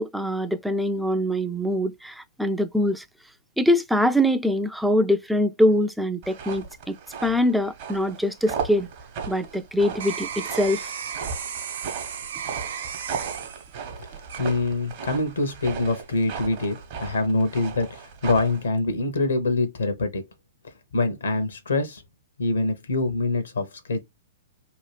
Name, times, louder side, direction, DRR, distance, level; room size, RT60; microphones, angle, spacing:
voice 1, 0.0-3.0 3.6-7.0 7.2-8.9 9.3-10.9, equal, ahead, 0.3 m, -23 dB
sound 1, 6.2-18.7, right 6 dB, 45° right, 0.9 m, -36 dB
sound 2, 8.8-15.1 15.6-16.0, right 7 dB, 65° right, 0.5 m, -35 dB
voice 2, 14.4-20.2 20.9-22.0 22.4-24.0, left 2 dB, 75° left, 0.8 m, -25 dB
2.8 x 2.2 x 3.2 m
figure-of-eight pair, 115°, 0 cm